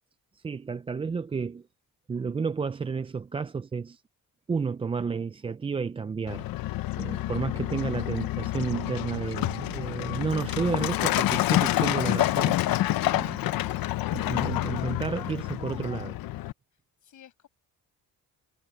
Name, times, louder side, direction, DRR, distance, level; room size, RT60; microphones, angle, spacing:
voice 1, 0.3-1.6 2.1-4.0 4.5-6.5 7.0-12.6 13.1-13.4 14.1-16.2, right 5 dB, 15° right, 0.3 m, -31 dB
Truck, 6.3-16.5, left 15 dB, 80° left, 0.7 m, -28 dB
voice 2, 13.1-13.5 16.7-17.5, left 10 dB, 60° left, 7.2 m, -53 dB
cardioid pair, 155°, 34 cm